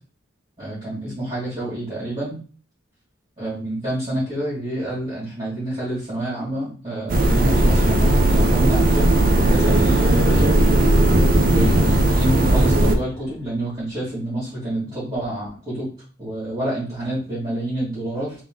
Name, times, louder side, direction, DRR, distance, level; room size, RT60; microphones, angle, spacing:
voice 1, 0.6-2.4 3.4-10.6 11.5-15.9 16.2-18.3, right 1 dB, 25° right, -10 dB, 1.9 m, -28 dB
sound 1, 7.1-13.0, right 1 dB, 45° right, 0.5 m, -17 dB
sound 2, 7.3-14.0, left 2 dB, 85° left, 0.4 m, -29 dB
3.7 x 2.7 x 3.7 m, 0.40 s
head